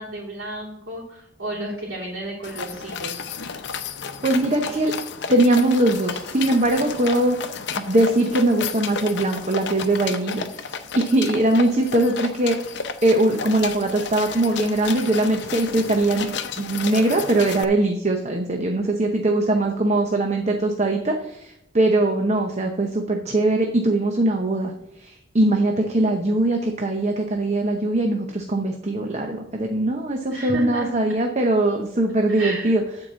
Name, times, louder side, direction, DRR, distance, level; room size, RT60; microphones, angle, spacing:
voice 1, 0.0-3.2 30.3-30.9 32.3-32.7, right 1 dB, 85° right, -8 dB, 3.0 m, -32 dB
sound 1, 2.4-17.6, left 5 dB, 60° left, 0.7 m, -32 dB
voice 2, 4.2-4.9 5.3-7.4 7.8-32.8, right 1 dB, 35° right, 3 dB, 0.8 m, -21 dB
9.9 x 4.7 x 7.4 m, 0.79 s
head